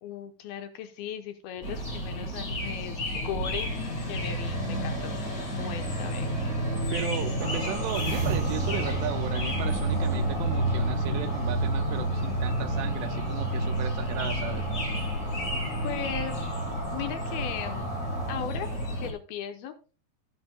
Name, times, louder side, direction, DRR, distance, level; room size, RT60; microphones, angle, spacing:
voice 1, 0.0-3.7 4.1-5.2 5.5-6.3 15.8-16.5 16.9-17.9 18.3-18.7 19.0-19.7, left 8 dB, 75° left, 2.4 m, -37 dB
sound 1, 1.6-19.1, equal, 20° left, 3.6 m, -31 dB
sound 2, 1.6-4.0 5.9-6.6 7.9-10.3, right 4 dB, 55° right, 3.7 m, -37 dB
voice 2, 6.9-14.7, right 11 dB, 85° right, 2.7 m, -36 dB
sound 3, 7.4-18.4, right 2 dB, 15° right, 3.3 m, -33 dB
17.0 x 7.8 x 2.2 m
omnidirectional pair, 5.0 m